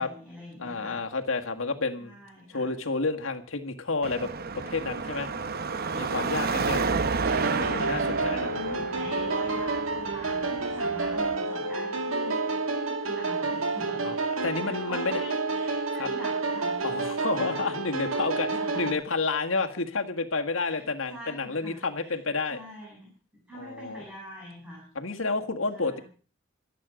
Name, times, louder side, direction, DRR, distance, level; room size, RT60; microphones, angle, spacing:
voice 1, 0.0-1.0 2.0-2.7 8.0-12.4 12.7-14.1 14.6-16.9 18.3-19.0 20.5-22.2 22.5-23.1 23.5-24.8 25.7-26.0, equal, 5° right, -5 dB, 7.6 m, -44 dB
voice 2, 0.6-2.2 2.5-4.3 4.6-5.3 5.9-6.9 7.5-8.5 14.0-14.2 14.4-15.2 16.0-16.1 16.8-22.6 23.6-24.0 25.0-26.0, left 3 dB, 75° left, 4 dB, 1.8 m, -30 dB
Car passing by / Traffic noise roadway noise / Engine, 4.0-11.4, right 4 dB, 50° right, 0.8 m, -31 dB
sound 1, 7.2-18.9, right 3 dB, 85° right, 1.9 m, -29 dB
25.5 x 8.6 x 5.1 m, 0.41 s
head